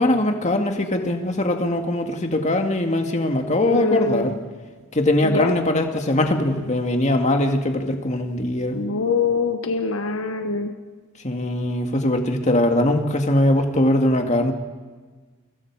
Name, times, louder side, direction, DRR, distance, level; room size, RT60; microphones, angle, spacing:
voice 1, 0.0-4.4 4.9-8.8 11.2-14.5, left 1 dB, 35° left, 4 dB, 2.1 m, -21 dB
voice 2, 3.6-4.3 5.2-5.5 8.7-10.7, left 4 dB, 70° left, 6 dB, 1.2 m, -24 dB
29.0 x 24.5 x 4.8 m, 1.4 s
head